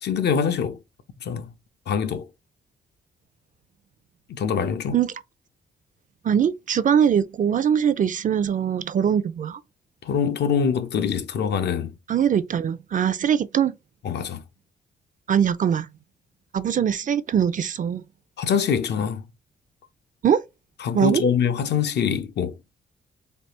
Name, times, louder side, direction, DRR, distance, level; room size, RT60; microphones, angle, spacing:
voice 1, 0.0-0.8 1.2-1.5 1.9-2.3 4.3-5.0 10.0-11.9 14.0-14.4 18.4-19.2 20.8-22.6, left 7 dB, 65° left, 0.6 m, -24 dB
voice 2, 6.2-9.6 12.1-13.8 15.3-15.9 16.5-18.0 20.2-20.4 20.9-21.2, right 8 dB, 45° right, 0.4 m, -22 dB
3.3 x 2.4 x 2.9 m
cardioid pair, 95°, 19 cm